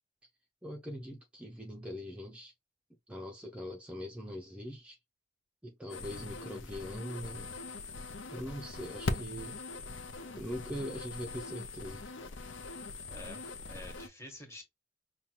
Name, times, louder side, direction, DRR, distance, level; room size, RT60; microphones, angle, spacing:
voice 1, 0.6-2.5 3.1-5.0 5.6-7.5 8.3-9.6 10.4-12.0, equal, 5° right, 0.5 m, -42 dB
sound 1, 5.9-14.1, left 3 dB, 75° left, 0.6 m, -41 dB
voice 2, 6.0-6.3 13.1-14.6, left 1 dB, 15° left, 1.4 m, -49 dB
5.5 x 2.3 x 2.9 m
head